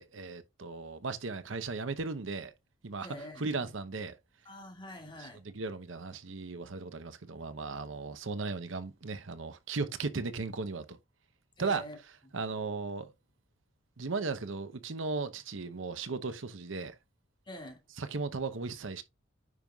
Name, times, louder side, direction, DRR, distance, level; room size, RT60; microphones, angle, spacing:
voice 1, 0.0-2.5 2.8-3.1 3.4-4.2 5.2-11.0 11.6-11.9 12.3-13.1 14.0-16.9 18.0-19.0, right 4 dB, 85° right, 0.9 m, -36 dB
voice 2, 3.0-3.6 4.4-5.4 11.6-12.0 12.3-12.4 17.5-17.8, left 1 dB, 25° left, 2.4 m, -46 dB
9.6 x 5.5 x 2.3 m
head